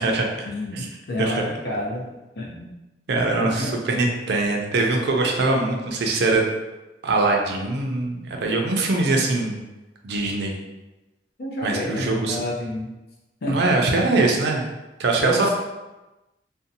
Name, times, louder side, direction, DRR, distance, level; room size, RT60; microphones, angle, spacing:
voice 1, 0.4-2.0 2.4-2.7 3.2-3.7 11.4-12.9 13.4-13.6 15.2-15.5, left 1 dB, 65° left, -3 dB, 0.5 m, -29 dB
voice 2, 3.1-6.4 7.0-9.6 10.0-10.5 11.6-12.4 13.5-14.6 15.0-15.5, right 2 dB, 65° right, 1 dB, 0.4 m, -22 dB
2.6 x 2.1 x 2.6 m, 1.1 s
head